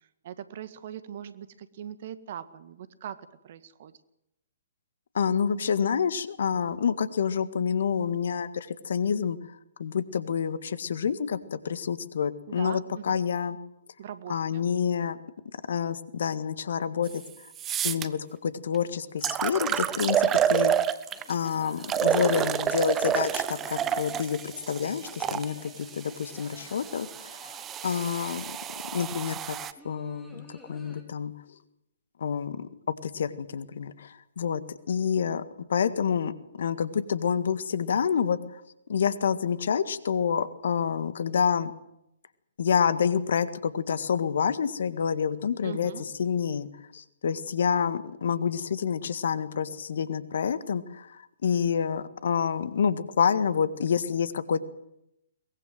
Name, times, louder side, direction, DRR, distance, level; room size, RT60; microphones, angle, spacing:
voice 1, 0.0-3.9 12.5-13.2 14.0-14.6 20.3-20.7 45.6-46.1, right 9 dB, 50° right, 13 dB, 1.7 m, -41 dB
voice 2, 5.1-9.4 9.8-13.6 14.3-15.2 15.5-17.2 17.8-20.7 21.3-27.5 27.8-28.4 28.8-29.5 29.8-31.3 32.2-32.7 33.0-34.6 34.9-35.4 35.7-38.6 38.9-41.7 42.6-45.9 46.2-46.7 46.9-54.6, left 7 dB, 65° left, 13 dB, 1.7 m, -28 dB
sound 1, 17.1-17.2 17.6-18.1 18.7-18.8 19.2-21.3 21.8-25.5 26.3-29.7, right 9 dB, 20° right, 1.1 m, -28 dB
sound 2, 21.1-31.0, equal, ahead, 4.8 m, -53 dB
22.5 x 21.0 x 7.8 m, 0.80 s
figure-of-eight pair, 125°, 0 cm